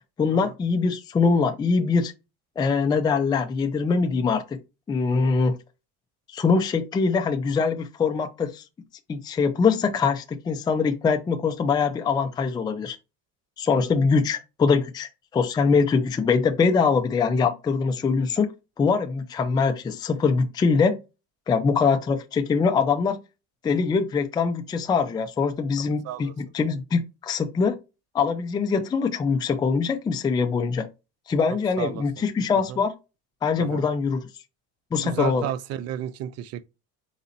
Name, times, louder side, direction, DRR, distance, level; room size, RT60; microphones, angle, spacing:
voice 1, 0.2-2.1 2.6-4.6 4.9-5.6 6.3-8.6 9.1-13.0 13.6-18.5 18.8-20.9 21.5-23.2 23.6-27.8 28.1-30.9 31.3-32.9 33.4-34.3 34.9-35.5, left 5 dB, 15° left, 0.4 m, -23 dB
voice 2, 31.5-32.0 32.7-32.8 33.6-33.8 35.0-36.7, right 11 dB, 50° right, 0.5 m, -32 dB
4.2 x 4.0 x 2.6 m
cardioid pair, 155°, 33 cm